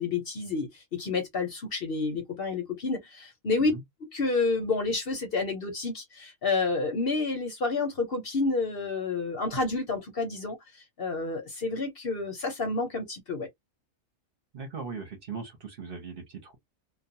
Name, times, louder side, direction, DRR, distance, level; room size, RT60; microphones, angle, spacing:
voice 1, 0.0-3.7 4.1-13.5, left 3 dB, 50° left, 0.8 m, -29 dB
voice 2, 14.5-16.6, right 5 dB, 50° right, 0.9 m, -39 dB
2.4 x 2.2 x 2.6 m
omnidirectional pair, 1.4 m